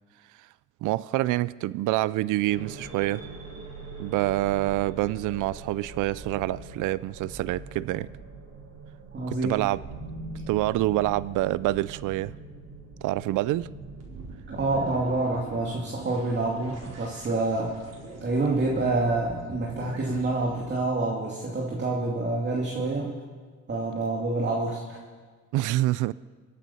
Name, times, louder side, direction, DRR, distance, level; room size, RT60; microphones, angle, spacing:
voice 1, 0.8-3.2 4.0-8.1 9.3-9.8 10.5-12.3 13.0-13.7 25.5-26.1, right 16 dB, 85° right, 20 dB, 0.5 m, -26 dB
sound 1, 2.5-20.9, right 3 dB, 55° right, 4.1 m, -42 dB
voice 2, 9.1-9.6 14.5-17.7 18.2-23.1 23.7-25.0, right 2 dB, 35° right, -1 dB, 2.3 m, -27 dB
24.5 x 8.4 x 5.6 m, 1.5 s
cardioid pair, 90°, 30 cm